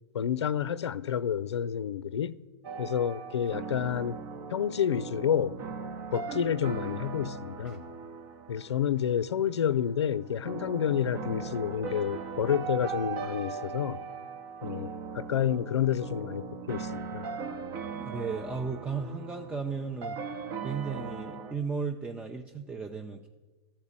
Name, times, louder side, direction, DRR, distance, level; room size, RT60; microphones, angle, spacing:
voice 1, 0.1-2.4 2.8-4.2 4.5-5.6 6.1-7.9 8.5-14.0 14.6-17.3, left 9 dB, 85° left, 0.4 m, -29 dB
sound 1, 2.6-21.5, right 5 dB, 50° right, 1.0 m, -39 dB
voice 2, 17.9-20.2 20.6-23.3, right 5 dB, 10° right, 0.5 m, -35 dB
13.0 x 4.4 x 8.6 m
hypercardioid pair, 105°, 14 cm